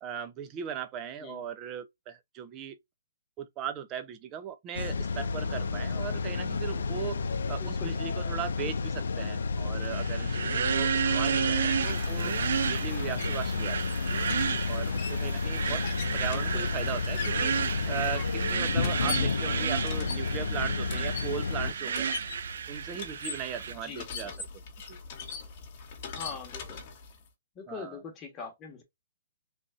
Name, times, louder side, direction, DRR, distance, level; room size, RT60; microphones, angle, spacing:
voice 1, 0.0-2.8 3.4-7.2 7.5-12.3 12.6-13.8 14.7-15.8 16.1-22.1 22.7-24.5 24.8-25.0 27.7-28.0, right 8 dB, 25° right, 0.6 m, -38 dB
sound 1, 4.7-21.7, left 4 dB, 80° left, 0.4 m, -31 dB
voice 2, 7.6-8.0 16.3-16.6 23.8-24.0 26.1-26.8 27.5-28.8, left 6 dB, 25° left, 1.2 m, -42 dB
sound 2, 9.9-23.7, right 7 dB, 70° right, 0.3 m, -32 dB
sound 3, 11.1-27.3, left 6 dB, 45° left, 1.2 m, -43 dB
3.4 x 2.6 x 2.5 m
hypercardioid pair, 145°, 0 cm